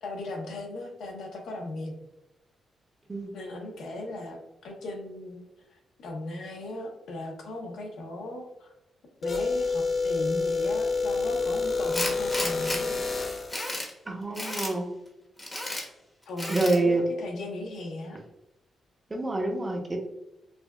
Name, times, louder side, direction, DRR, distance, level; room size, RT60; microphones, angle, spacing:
voice 1, 0.0-1.9 3.3-5.4 5.7-8.7 9.2-13.0 16.3-18.2, left 2 dB, 85° left, 1 dB, 0.8 m, -37 dB
sound 1, 9.2-13.6, left 4 dB, 30° left, 0.5 m, -28 dB
Tools, 11.9-12.8 13.3-13.9 14.3-14.7 15.4-15.8 16.4-16.8, left 1 dB, 15° left, 0.8 m, -32 dB
voice 2, 14.1-14.8 16.5-17.0 19.1-20.0, right 2 dB, 20° right, 2 dB, 0.6 m, -26 dB
4.9 x 2.4 x 2.2 m, 0.89 s
cardioid pair, 130°, 0 cm